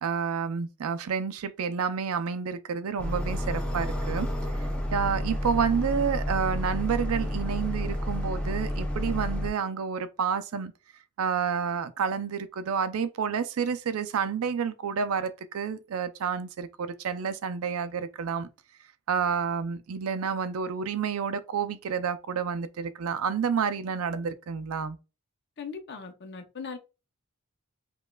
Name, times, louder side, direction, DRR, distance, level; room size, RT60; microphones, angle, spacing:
voice 1, 0.0-4.3 4.9-10.7 11.2-18.5 19.1-25.0, right 6 dB, 75° right, 0.4 m, -29 dB
sound 1, 3.0-9.5, equal, 5° left, 0.5 m, -30 dB
voice 2, 25.6-26.8, left 5 dB, 50° left, 0.6 m, -39 dB
5.1 x 2.3 x 2.2 m
head